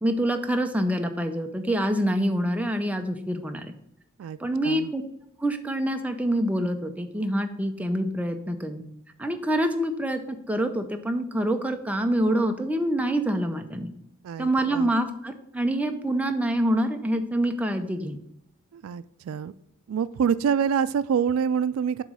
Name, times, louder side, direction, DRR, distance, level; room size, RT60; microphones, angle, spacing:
voice 1, 0.0-3.7 4.4-5.0 5.4-8.8 9.2-13.9 14.4-18.2, right 1 dB, 5° right, 5 dB, 0.5 m, -26 dB
voice 2, 14.2-14.9 18.7-19.5 19.9-22.0, right 7 dB, 75° right, 16 dB, 0.3 m, -26 dB
7.5 x 3.1 x 6.1 m, 0.76 s
head